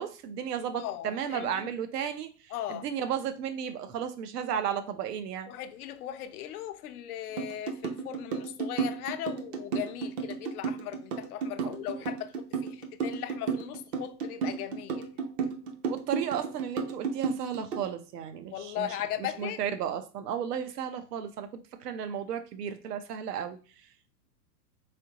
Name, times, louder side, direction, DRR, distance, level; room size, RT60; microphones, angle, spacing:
voice 1, 0.0-5.5 11.6-12.0 15.9-18.9 19.4-23.6, right 8 dB, 70° right, 0.8 m, -34 dB
voice 2, 0.7-1.7 2.5-2.9 5.5-15.1 18.5-19.6, left 11 dB, 65° left, 0.6 m, -38 dB
sound 1, 7.4-17.9, right 5 dB, 30° right, 0.6 m, -32 dB
3.7 x 3.4 x 2.8 m
hypercardioid pair, 120°, 49 cm